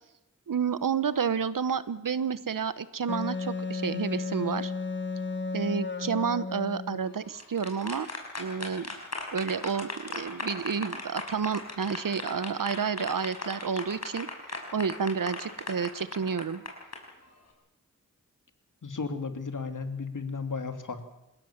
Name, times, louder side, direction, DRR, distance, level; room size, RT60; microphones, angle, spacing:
voice 1, 0.5-4.7 5.5-8.1 8.4-8.9 9.3-14.3 14.7-16.6, right 6 dB, 85° right, 15 dB, 1.1 m, -30 dB
Wind instrument woodwind instrument, 3.1-7.2, left 3 dB, 35° left, 1.6 m, -33 dB
sound 1, 7.2-17.0, left 3 dB, 55° left, 6.0 m, -37 dB
voice 2, 18.8-21.1, left 4 dB, 70° left, 7 dB, 2.7 m, -34 dB
28.0 x 16.5 x 7.4 m, 0.90 s
wide cardioid pair, 70°, 32 cm